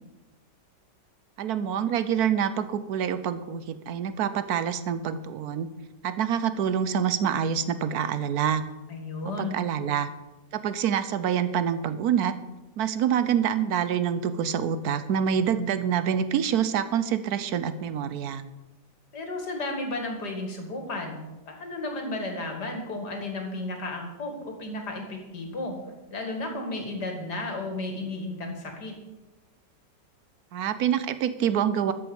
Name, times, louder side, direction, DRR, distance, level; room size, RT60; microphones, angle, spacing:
voice 1, 1.4-5.7 6.0-8.6 9.4-10.1 10.5-12.3 12.8-18.4 30.5-31.9, right 8 dB, 65° right, 12 dB, 1.2 m, -26 dB
voice 2, 8.9-9.6 19.1-21.2 21.5-25.8 26.1-28.9, left 2 dB, 65° left, 3 dB, 2.8 m, -33 dB
13.0 x 7.0 x 7.1 m, 1.1 s
omnidirectional pair, 1.9 m